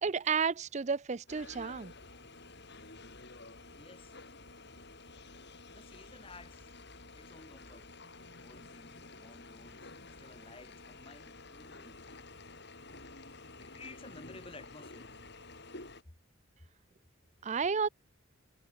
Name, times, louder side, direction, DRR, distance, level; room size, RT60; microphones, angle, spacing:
voice 1, 0.0-1.9 17.4-17.9, right 5 dB, 35° right, 0.5 m, -31 dB
sound 1, 1.3-16.0, left 3 dB, 55° left, 5.5 m, -51 dB
voice 2, 3.7-4.2 5.7-6.7 7.1-7.9 8.4-12.0 13.6-15.1, left 3 dB, 25° left, 1.5 m, -54 dB
head